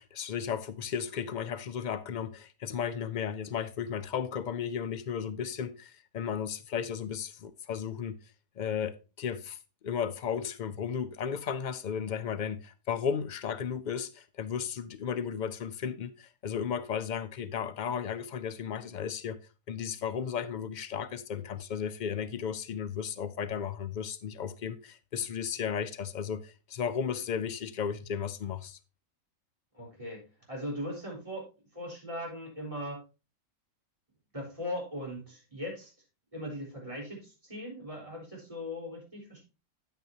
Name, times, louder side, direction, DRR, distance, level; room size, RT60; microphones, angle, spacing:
voice 1, 0.0-8.2 8.6-19.4 19.7-28.8, left 7 dB, 85° left, 0.4 m, -34 dB
voice 2, 29.7-31.5 31.7-33.0 34.3-35.9 36.3-39.4, left 1 dB, 25° right, 4.2 m, -39 dB
9.2 x 9.0 x 2.8 m
omnidirectional pair, 1.4 m